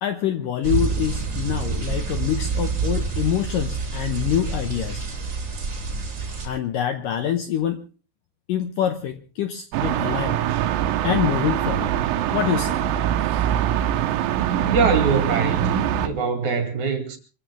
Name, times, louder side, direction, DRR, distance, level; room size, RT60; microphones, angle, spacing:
voice 1, 0.0-5.0 6.4-7.8 8.5-10.4 11.0-12.0 12.3-12.8, left 10 dB, 70° left, 2.1 m, -25 dB
sound 1, 0.6-6.5, right 4 dB, 30° right, 3.8 m, -27 dB
sound 2, 9.7-16.1, right 11 dB, 75° right, 2.3 m, -23 dB
voice 2, 14.7-17.2, right 4 dB, 50° right, 3.3 m, -23 dB
25.0 x 15.5 x 3.5 m
omnidirectional pair, 4.9 m